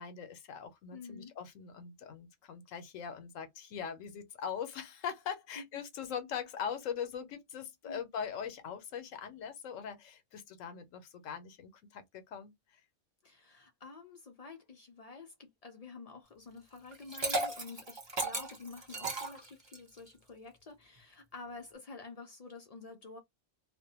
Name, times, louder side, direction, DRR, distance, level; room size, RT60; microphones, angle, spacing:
voice 1, 0.0-12.8, left 7 dB, 85° left, 1.0 m, -41 dB
voice 2, 0.9-1.3 5.6-5.7 7.8-8.0 13.2-23.2, left 4 dB, 65° left, 0.3 m, -49 dB
Liquid, 16.9-20.0, right 2 dB, 30° right, 0.6 m, -35 dB
2.5 x 2.1 x 2.7 m
omnidirectional pair, 1.3 m